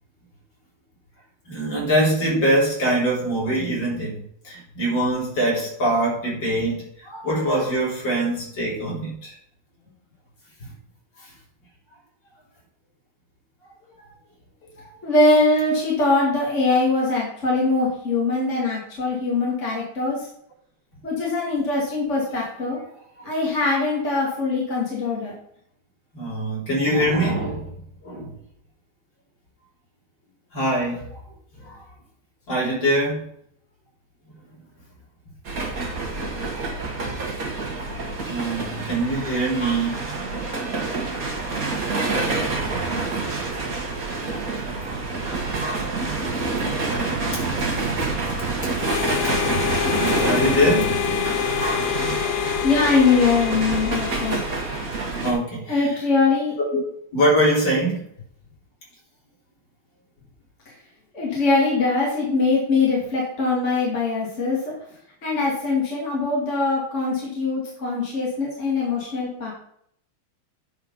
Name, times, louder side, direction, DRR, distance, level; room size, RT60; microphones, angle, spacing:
voice 1, 1.5-9.3 10.6-10.7 14.8-14.9 23.2-23.3 26.1-27.8 28.0-28.3 30.5-31.2 31.6-31.8 32.5-33.2 38.3-40.0 46.3-46.4 47.3-47.9 48.6-48.8 49.2-49.6 50.0-50.9 55.2-55.9 56.7-56.8 57.1-58.0, right 1 dB, 60° left, -5 dB, 4.2 m, -23 dB
voice 2, 15.0-20.3 21.0-22.8 23.2-25.3 52.6-54.4 55.7-56.5 61.1-64.7 65.2-69.5, left 3 dB, 35° left, -4 dB, 2.6 m, -22 dB
sound 1, 35.4-55.3, right 3 dB, 45° right, 2.1 m, -27 dB
Harmonica, 48.8-55.2, left 13 dB, 75° left, 1.4 m, -27 dB
9.7 x 4.9 x 5.5 m, 0.68 s
omnidirectional pair, 2.3 m